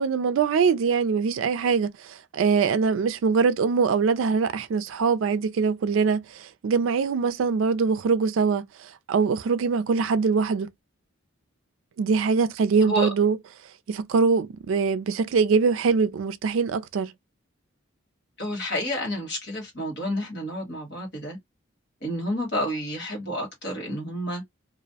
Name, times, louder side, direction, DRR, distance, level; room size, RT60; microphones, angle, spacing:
voice 1, 0.0-10.7 12.0-13.4 13.9-17.1, right 5 dB, 75° right, 0.3 m, -23 dB
voice 2, 18.4-21.4 22.0-24.4, equal, 55° left, 1.3 m, -30 dB
2.4 x 2.0 x 2.7 m
head